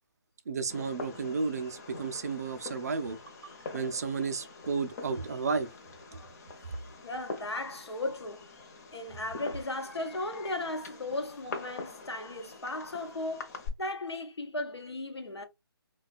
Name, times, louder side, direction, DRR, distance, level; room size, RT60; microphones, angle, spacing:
voice 1, 0.5-3.2 3.7-5.7, right 4 dB, 40° right, 0.4 m, -32 dB
Fireworks, 0.7-13.7, left 4 dB, 40° left, 0.7 m, -45 dB
voice 2, 7.0-8.5 8.9-15.4, left 2 dB, 85° left, 0.8 m, -36 dB
3.2 x 2.2 x 2.3 m
figure-of-eight pair, 150°, 13 cm